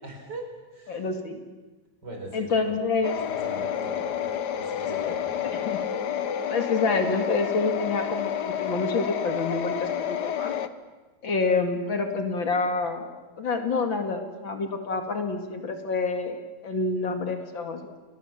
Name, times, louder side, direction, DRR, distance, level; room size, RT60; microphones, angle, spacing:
voice 1, 0.0-1.1 2.0-2.8 3.3-5.5, right 2 dB, 35° right, 3 dB, 5.3 m, -41 dB
voice 2, 0.9-1.4 2.3-3.1 4.8-5.2 5.4-5.8 6.5-10.5 11.2-13.1 13.4-16.4 16.6-18.0, left 4 dB, 45° left, 5 dB, 2.7 m, -27 dB
sound 1, 3.0-10.7, left 9 dB, 80° left, 0.9 m, -29 dB
30.0 x 20.5 x 7.3 m, 1.2 s
omnidirectional pair, 3.3 m